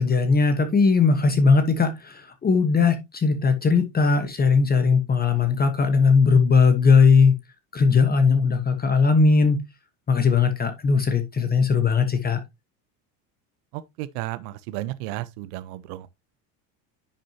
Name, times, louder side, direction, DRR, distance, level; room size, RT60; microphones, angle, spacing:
voice 1, 0.0-7.3 7.7-9.6 10.1-12.4, left 5 dB, 20° left, 1.2 m, -19 dB
voice 2, 13.7-16.1, right 15 dB, 75° right, 0.9 m, -33 dB
10.0 x 6.3 x 2.8 m
supercardioid pair, 130°, 46 cm